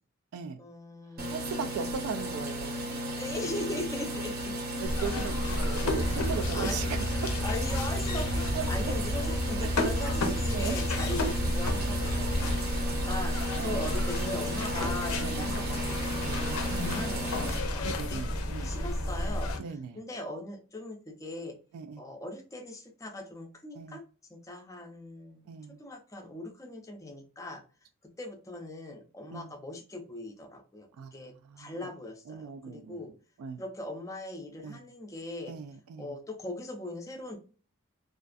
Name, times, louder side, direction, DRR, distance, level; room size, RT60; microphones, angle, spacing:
voice 1, 0.6-1.3 1.9-2.0 3.1-4.5 6.5-7.0 7.4-19.5 19.9-21.6 22.0-24.0 24.3-25.5 25.8-27.6 28.2-33.1 33.6-35.5 36.0-37.4, left 2 dB, 15° left, 0.4 m, -40 dB
sound 1, 1.2-17.6, equal, 45° right, 0.6 m, -35 dB
voice 2, 1.3-3.0 4.8-7.0 8.5-8.7 9.6-9.7 10.5-10.8 13.6-14.6 15.2-15.6 16.2-17.0 17.8-18.7 19.6-20.0 21.7-22.0 23.7-24.0 25.5-25.8 29.3-29.5 31.0-31.1 31.4-31.8 32.3-33.0 33.4-33.6 34.6-34.8 35.5-36.1, right 6 dB, 85° right, 0.3 m, -38 dB
sound 2, 4.8-19.6, left 1 dB, 90° left, 0.5 m, -31 dB
2.4 x 2.3 x 2.4 m
head